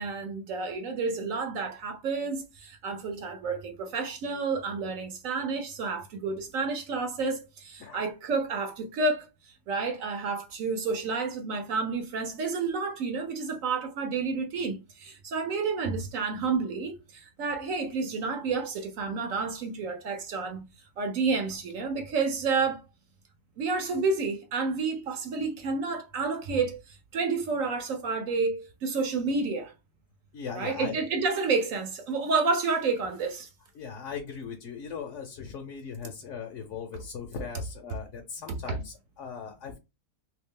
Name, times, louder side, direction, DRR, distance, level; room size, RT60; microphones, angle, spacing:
voice 1, 0.0-20.6 21.0-22.8 23.6-29.7 30.5-33.5 38.5-38.6, right 4 dB, 65° right, 0.9 m, -30 dB
voice 2, 30.3-31.0 33.8-39.8, left 6 dB, 60° left, 0.9 m, -39 dB
3.1 x 2.8 x 3.6 m
omnidirectional pair, 1.7 m